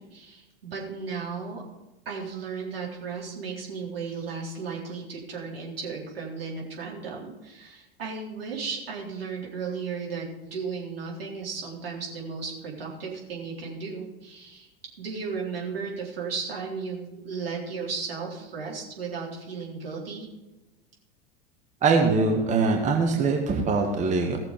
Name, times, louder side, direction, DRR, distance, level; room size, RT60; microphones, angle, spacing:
voice 1, 0.0-1.6 2.1-14.7 15.0-20.3, right 5 dB, 70° right, -3 dB, 3.9 m, -35 dB
voice 2, 21.8-24.4, right 4 dB, 25° right, 2 dB, 1.6 m, -22 dB
17.0 x 6.8 x 5.2 m, 1.0 s
figure-of-eight pair, 85°, 31 cm